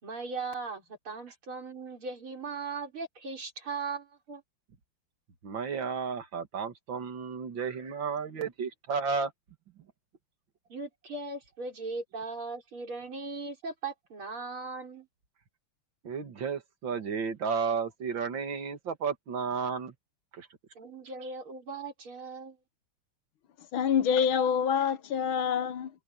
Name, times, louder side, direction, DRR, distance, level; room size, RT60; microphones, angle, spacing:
voice 1, 0.0-4.4 10.7-15.1 20.8-22.6, right 4 dB, 85° right, 5.6 m, -38 dB
voice 2, 5.4-9.3 16.0-19.9 20.3-20.5, right 5 dB, 65° right, 2.7 m, -33 dB
voice 3, 23.7-25.9, left 7 dB, 75° left, 1.7 m, -26 dB
omnidirectional pair, 2.3 m